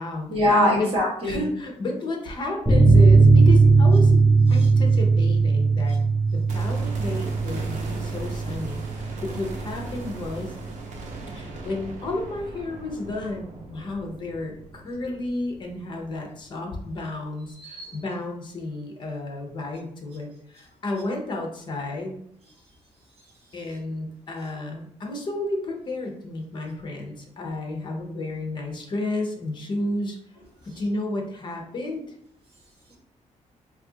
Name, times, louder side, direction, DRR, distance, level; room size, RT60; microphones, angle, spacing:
voice 1, 0.3-1.4 4.6-4.7 17.6-18.0, left 1 dB, 45° right, -3 dB, 1.1 m, -23 dB
voice 2, 1.2-4.2 4.5-6.0 6.3-10.5 11.3-22.2 23.5-30.2 30.6-32.2, left 2 dB, 35° left, 2 dB, 0.6 m, -32 dB
sound 1, 2.7-9.8 10.0-10.1 10.5-10.6, right 3 dB, ahead, 0.4 m, -18 dB
sound 2, 6.5-16.5 16.8-16.9, right 2 dB, 80° right, 0.6 m, -39 dB
2.7 x 2.4 x 3.7 m, 0.68 s
wide cardioid pair, 175°, 13 cm